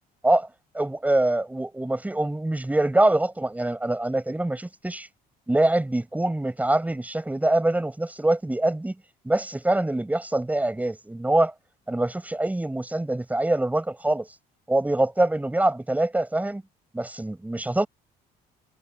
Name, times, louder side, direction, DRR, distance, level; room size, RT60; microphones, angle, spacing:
voice 1, 0.7-5.1 5.5-9.0 9.2-11.5 11.9-14.3 14.7-16.6 16.9-17.9, right 1 dB, 10° right, 7.5 m, -24 dB
cardioid pair, 110°, 17 cm